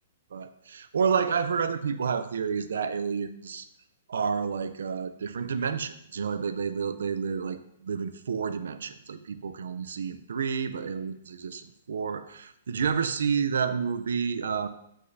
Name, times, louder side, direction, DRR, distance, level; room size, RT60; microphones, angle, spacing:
voice 1, 0.3-3.7 4.1-14.7, right 6 dB, 85° right, 11 dB, 0.6 m, -30 dB
7.9 x 6.2 x 2.7 m, 0.76 s
hypercardioid pair, 180°, 0 cm